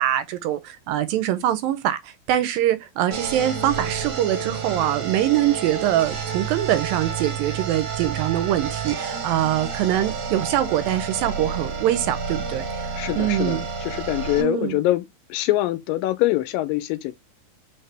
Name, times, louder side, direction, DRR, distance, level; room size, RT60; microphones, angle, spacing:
voice 1, 0.0-13.7 14.4-14.8, right 12 dB, 90° right, 2.4 m, -23 dB
sound 1, 3.1-14.4, right 6 dB, 55° right, 2.0 m, -30 dB
voice 2, 12.9-15.0 15.3-17.1, left 16 dB, 85° left, 2.3 m, -24 dB
5.4 x 2.9 x 3.2 m
omnidirectional pair, 4.1 m